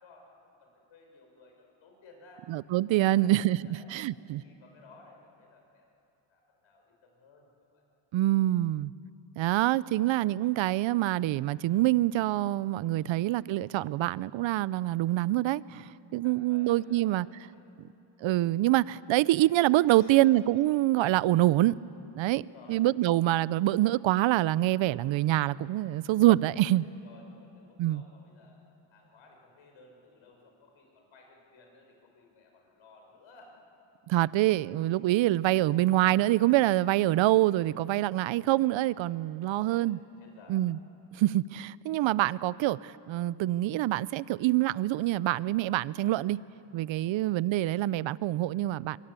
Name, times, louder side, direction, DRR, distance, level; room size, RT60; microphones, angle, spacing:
voice 1, 0.0-2.5 3.0-5.9 6.3-7.8 12.9-13.3 16.2-17.7 19.9-20.3 22.4-22.9 26.5-26.7 27.0-33.6 39.4-40.7 47.0-47.2, left 3 dB, 70° left, 1 dB, 6.1 m, -57 dB
voice 2, 2.5-3.6 3.9-4.4 8.1-8.9 9.4-17.3 18.2-21.8 22.2-26.8 27.8-28.0 34.1-40.0 40.5-40.8 41.2-46.4 46.7-49.0, right 15 dB, 70° right, 20 dB, 0.6 m, -25 dB
24.0 x 22.0 x 8.3 m, 2.7 s
cardioid pair, 85°, 48 cm